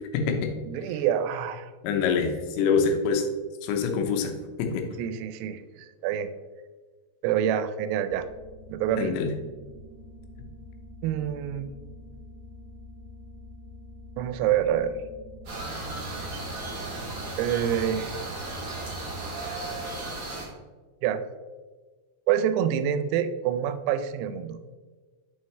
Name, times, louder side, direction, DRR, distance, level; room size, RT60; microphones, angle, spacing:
voice 1, 0.0-0.5 1.8-3.3 3.6-4.3 4.6-4.9 9.0-9.4, left 5 dB, 85° left, 4 dB, 3.5 m, -25 dB
voice 2, 0.7-1.7 5.0-6.3 7.2-8.2 8.7-9.1 11.0-11.7 14.2-15.0 17.4-18.2 21.0-21.2 22.3-24.6, right 9 dB, 90° right, 10 dB, 3.3 m, -26 dB
sound 1, 8.1-20.1, left 1 dB, 70° left, 3.8 m, -47 dB
sound 2, 15.5-20.5, right 2 dB, 45° right, 2.7 m, -35 dB
7.7 x 5.7 x 3.2 m, 1.3 s
omnidirectional pair, 6.0 m